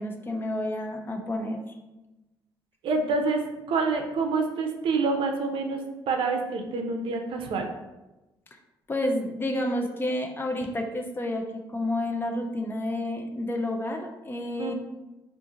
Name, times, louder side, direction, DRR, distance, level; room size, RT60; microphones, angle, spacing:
voice 1, 0.0-1.8 8.9-11.4 11.7-14.7, left 1 dB, 25° left, 4 dB, 0.4 m, -30 dB
voice 2, 2.8-7.7 14.6-14.7, right 4 dB, 70° right, 4 dB, 0.5 m, -27 dB
2.6 x 2.5 x 3.7 m, 1.0 s
cardioid pair, 95°, 9 cm